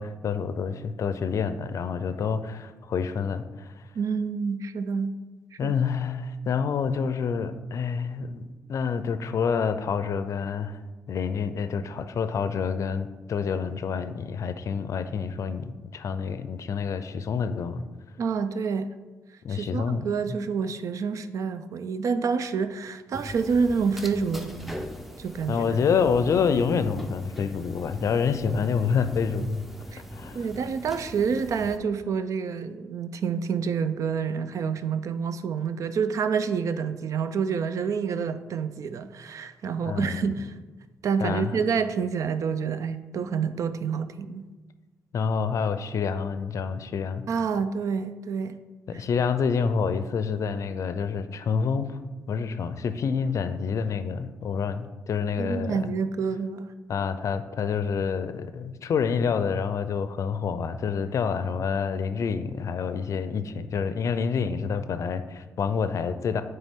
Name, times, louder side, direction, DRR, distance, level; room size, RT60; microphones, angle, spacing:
voice 1, 0.0-3.9 5.6-10.8 11.1-17.8 19.4-20.3 25.5-29.6 30.1-30.4 39.9-40.4 41.2-41.5 45.1-47.3 48.9-52.0 52.3-55.9 56.9-66.4, left 6 dB, 60° left, 11 dB, 0.5 m, -28 dB
voice 2, 4.0-5.2 5.5-5.7 18.2-18.9 19.5-24.8 25.2-25.8 29.9-30.0 30.3-40.5 41.0-44.5 47.3-48.6 55.4-56.7, right 6 dB, 65° right, 11 dB, 0.4 m, -28 dB
sound 1, 23.1-31.8, equal, ahead, 0.6 m, -41 dB
8.9 x 3.3 x 3.6 m, 1.2 s
cardioid pair, 75°, 6 cm